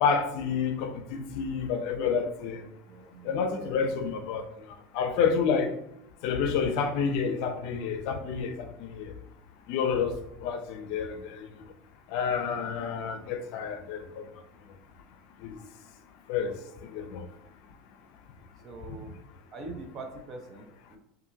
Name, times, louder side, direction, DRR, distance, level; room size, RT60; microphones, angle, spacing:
voice 1, 0.0-2.6 3.3-4.4 4.9-5.7 6.2-9.1 9.7-10.2 10.4-11.5 12.1-14.2 15.5-15.6 16.3-16.5 16.9-17.2, left 6 dB, 65° left, 0.5 m, -29 dB
voice 2, 2.9-4.0 18.6-19.2 19.5-21.0, right 3 dB, 35° right, 0.7 m, -43 dB
5.4 x 2.6 x 2.7 m
supercardioid pair, 135°, 0 cm